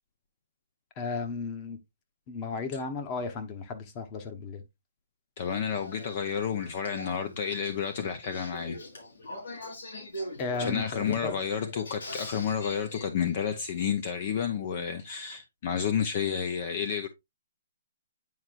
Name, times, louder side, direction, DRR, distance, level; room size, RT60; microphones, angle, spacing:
voice 1, 1.0-1.8 2.3-4.6 10.4-11.4, left 4 dB, 25° left, 1.1 m, -34 dB
Male speech man speaking / Female speech woman speaking / Conversation, 5.4-13.0, left 1 dB, 80° left, 3.7 m, -42 dB
voice 2, 5.4-8.8 10.6-17.1, left 7 dB, 45° left, 0.7 m, -30 dB
9.4 x 4.5 x 2.5 m
hypercardioid pair, 155°, 0 cm